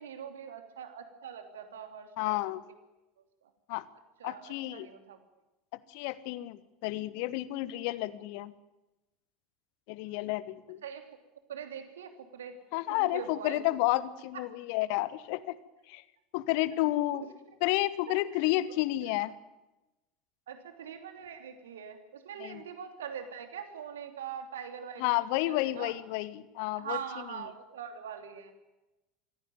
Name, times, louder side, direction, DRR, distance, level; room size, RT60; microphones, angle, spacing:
voice 1, 0.0-2.6 3.4-3.5 4.2-5.2 10.0-10.2 10.8-11.1 11.5-13.7 14.3-14.4 17.1-17.3 18.1-18.5 18.7-19.1 20.5-25.1 25.4-25.9 26.7-28.5, right 8 dB, 70° right, 7 dB, 2.9 m, -43 dB
voice 2, 2.2-2.6 3.7-3.8 4.2-4.9 5.9-8.5 9.9-10.8 12.7-15.6 15.9-16.0 16.3-17.2 17.6-19.3 22.4-22.6 25.0-27.0, left 17 dB, 55° left, 17 dB, 1.2 m, -31 dB
24.5 x 16.5 x 9.3 m, 1.0 s
figure-of-eight pair, 75°, 0 cm